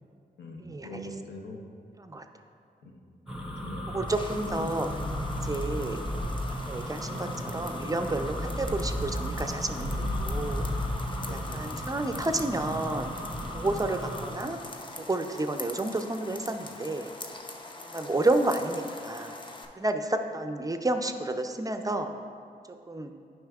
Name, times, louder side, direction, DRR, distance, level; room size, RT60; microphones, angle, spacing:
voice 1, 0.4-1.6 2.8-3.0 3.6-4.0 9.7-10.2 11.2-11.7, left 1 dB, 85° left, 1 dB, 0.7 m, -41 dB
sound 1, 3.3-14.3, equal, 5° right, 0.9 m, -34 dB
voice 2, 3.9-4.9 5.4-6.0 6.7-9.8 10.3-10.7 11.3-13.1 13.5-14.6 15.1-17.1 17.8-19.4 19.8-22.1 22.9-23.1, right 2 dB, 20° right, 7 dB, 0.4 m, -30 dB
sound 2, 4.1-19.7, left 2 dB, 25° left, 0.6 m, -44 dB
9.2 x 5.4 x 2.3 m, 2.3 s
cardioid pair, 55°, 18 cm